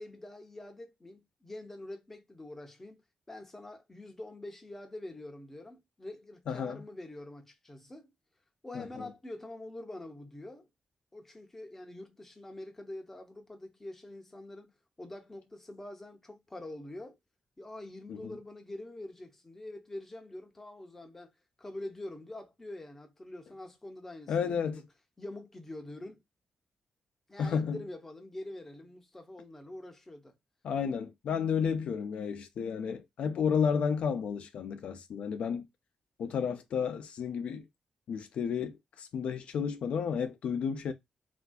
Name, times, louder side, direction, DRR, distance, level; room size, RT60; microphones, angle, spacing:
voice 1, 0.0-3.0 3.3-8.1 8.6-10.7 11.1-14.7 15.0-17.2 17.6-21.3 21.6-24.8 25.2-26.2 27.3-30.4, left 1 dB, 15° left, 0.6 m, -45 dB
voice 2, 6.5-6.8 8.7-8.8 18.1-18.4 24.3-24.8 27.4-27.8 30.6-35.7 36.2-37.7 38.1-40.9, left 6 dB, 75° left, 0.4 m, -32 dB
3.4 x 2.5 x 2.3 m
wide cardioid pair, 135°, 2 cm